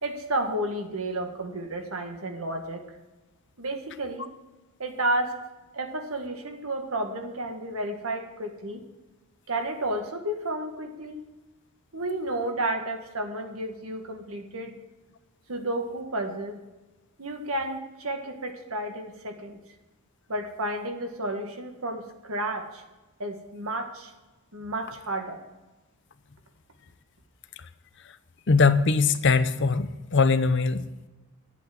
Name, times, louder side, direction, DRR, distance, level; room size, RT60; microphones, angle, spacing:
voice 1, 0.0-2.9 3.6-4.3 4.8-5.4 5.7-8.8 9.5-11.2 11.9-14.8 15.5-16.6 17.2-19.6 20.3-22.8 23.2-24.1 24.5-25.4, right 1 dB, 75° right, 4 dB, 1.7 m, -31 dB
voice 2, 28.5-31.1, left 4 dB, 55° left, 12 dB, 0.7 m, -22 dB
10.5 x 8.3 x 7.2 m, 1.1 s
head